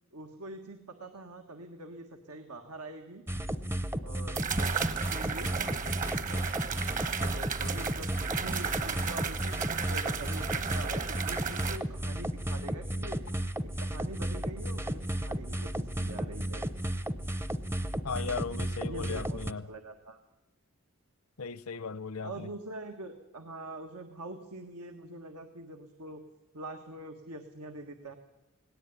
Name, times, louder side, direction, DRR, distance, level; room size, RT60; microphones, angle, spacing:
voice 1, 0.1-3.2 4.0-4.4 5.1-5.5 6.1-6.4 7.3-13.3 13.8-16.6 18.9-20.2 22.2-26.2 26.5-28.1, right 2 dB, 85° right, 1.6 m, -44 dB
sound 1, 3.3-19.5, right 1 dB, 10° right, 0.7 m, -34 dB
sound 2, 3.4-3.5 4.4-11.8, right 6 dB, 35° right, 1.1 m, -34 dB
voice 2, 18.0-19.7 21.4-22.5, left 5 dB, 70° left, 0.8 m, -37 dB
18.5 x 18.0 x 9.8 m
head